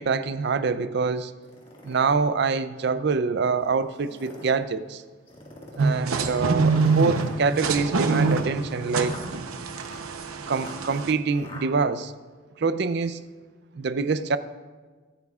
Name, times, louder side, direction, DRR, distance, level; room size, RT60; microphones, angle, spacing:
voice 1, 0.0-1.3 1.8-5.0 5.8-9.2 10.5-12.1 12.6-13.2 13.7-14.4, right 4 dB, 55° right, 0.4 m, -25 dB
sound 1, 1.4-2.1 2.8-2.9 3.9-4.6 5.3-6.0 6.7-11.7, left 1 dB, 25° left, 1.7 m, -45 dB
sound 2, 5.8-11.1, right 4 dB, 90° right, 0.8 m, -25 dB
22.5 x 9.0 x 2.4 m
head